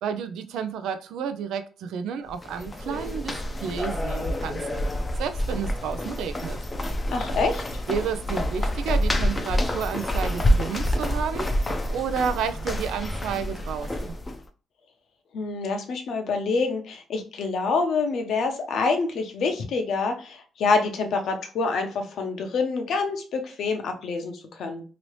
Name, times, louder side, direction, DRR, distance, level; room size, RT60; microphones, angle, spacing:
voice 1, 0.0-4.6 5.2-6.6 7.9-11.5 11.9-14.2, right 7 dB, 85° right, 0.4 m, -31 dB
sound 1, 2.3-14.4, equal, 20° left, 0.6 m, -27 dB
voice 2, 7.1-7.8 15.3-24.8, left 4 dB, 70° left, 0.7 m, -26 dB
2.9 x 2.7 x 3.0 m
cardioid pair, 90°, 0 cm